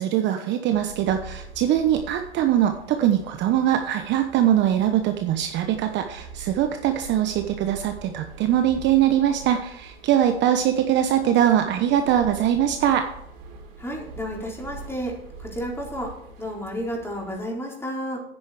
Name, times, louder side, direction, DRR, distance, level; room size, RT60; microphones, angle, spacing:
voice 1, 0.0-13.1, right 10 dB, 35° right, 6 dB, 1.0 m, -22 dB
sound 1, 0.7-17.4, right 4 dB, 55° right, 3.7 m, -44 dB
voice 2, 13.8-18.2, equal, 10° left, -1 dB, 4.0 m, -32 dB
10.5 x 9.7 x 4.9 m, 0.76 s
hypercardioid pair, 110°, 31 cm